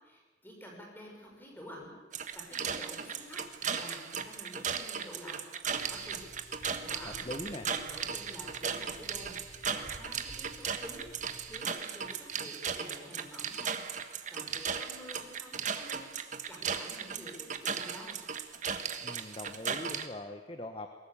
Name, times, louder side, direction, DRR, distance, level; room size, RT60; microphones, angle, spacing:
voice 1, 0.0-3.4 3.7-16.1 16.5-18.2, equal, 10° left, 0 dB, 5.9 m, -49 dB
sound 1, 2.1-20.1, right 6 dB, 40° right, 1.4 m, -36 dB
sound 2, 5.6-11.6, left 1 dB, 55° left, 3.5 m, -54 dB
voice 2, 7.0-7.7 19.0-20.9, left 1 dB, 30° left, 7 dB, 1.2 m, -41 dB
21.5 x 18.5 x 8.6 m, 1.3 s
head